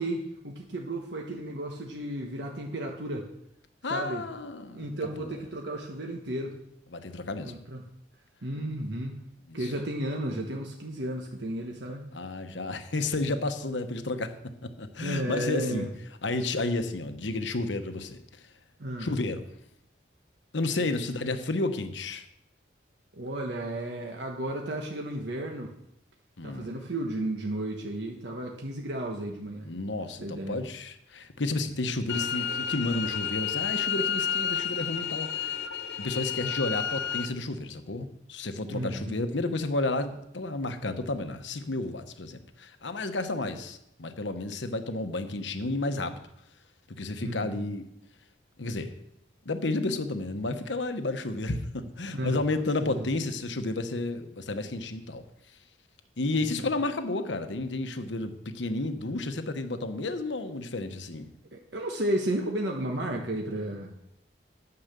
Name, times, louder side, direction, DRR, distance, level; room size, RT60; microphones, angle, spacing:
voice 1, 0.0-3.3 3.9-4.2 4.7-6.6 7.5-7.8 8.4-9.2 9.5-12.1 15.0-15.9 18.8-19.1 23.1-25.7 26.4-29.7 30.2-30.6 38.7-39.2 47.2-47.7 52.1-52.4 52.8-53.1 56.4-56.6 61.5-63.9, right 1 dB, 70° right, 1 dB, 1.2 m, -33 dB
voice 2, 3.8-5.4 6.9-7.5 9.5-9.7 12.1-14.3 14.6-15.9 16.2-18.5 19.0-19.5 20.5-22.2 26.4-26.7 29.6-35.6 36.0-46.3 47.0-47.8 48.6-48.9 49.4-55.2 56.2-61.3, left 2 dB, 80° left, 8 dB, 1.0 m, -31 dB
sound 1, 32.1-37.3, left 9 dB, 65° left, 0.7 m, -31 dB
9.7 x 7.8 x 6.8 m, 0.77 s
head